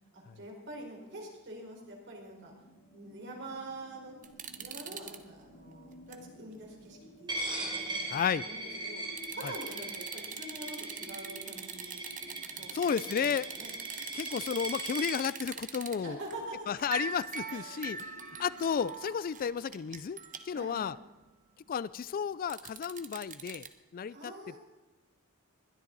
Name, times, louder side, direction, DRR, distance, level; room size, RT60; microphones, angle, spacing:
voice 1, 0.1-2.5 2.9-4.1 4.6-12.3 12.6-12.9 13.2-13.7 16.0-16.7 17.5-17.9 20.5-21.0 24.1-24.6, right 1 dB, 55° right, 0 dB, 4.6 m, -46 dB
sound 1, 2.3-19.0, equal, 60° left, 4.4 m, -55 dB
sound 2, 4.2-5.2 5.7-6.2 6.6-6.7 9.2-16.0 16.3-16.4 16.8-20.6 22.5-23.7, right 6 dB, 35° right, 1.0 m, -42 dB
Coin (dropping), 7.3-15.2, right 2 dB, 20° right, 3.4 m, -40 dB
voice 2, 8.1-8.4 9.4-9.5 12.7-13.5 14.1-16.2 16.7-18.1 18.4-20.2 20.5-21.0 21.7-23.7 23.9-24.2, left 7 dB, 40° left, 18 dB, 0.3 m, -32 dB
20.5 x 12.5 x 4.0 m, 1.2 s
head